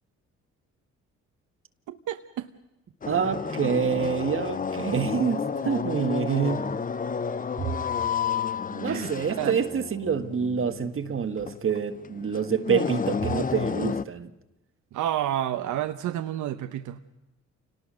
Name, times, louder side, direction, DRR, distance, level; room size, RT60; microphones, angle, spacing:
voice 1, 1.9-2.5 8.9-9.1 9.4-9.5 14.9-17.0, right 11 dB, 75° right, 1.0 m, -30 dB
sound 1, 3.0-14.0, left 6 dB, 25° left, 0.7 m, -31 dB
voice 2, 3.1-6.7 7.6-7.7 8.7-14.3, right 6 dB, 45° right, 1.6 m, -27 dB
29.0 x 19.0 x 6.3 m
cardioid pair, 90°, 30 cm